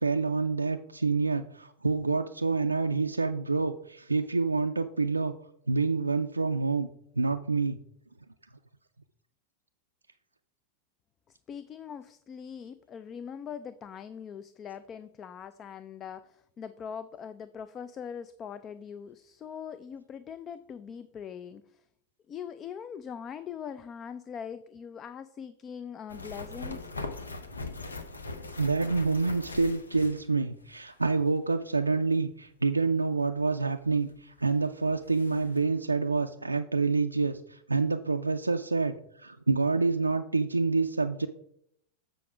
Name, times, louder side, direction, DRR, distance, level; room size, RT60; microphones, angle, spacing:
voice 1, 0.0-5.4 5.7-6.9 7.2-7.8 28.6-41.3, right 4 dB, 80° right, 6 dB, 0.3 m, -27 dB
voice 2, 11.3-21.9 22.3-26.9, left 7 dB, 25° left, 13 dB, 0.3 m, -42 dB
sound 1, 26.1-30.8 31.0-31.1 34.1-34.2 34.6-34.7 34.9-35.6, left 3 dB, 75° left, 0.8 m, -40 dB
7.7 x 5.0 x 4.8 m, 0.73 s
figure-of-eight pair, 90°, 0 cm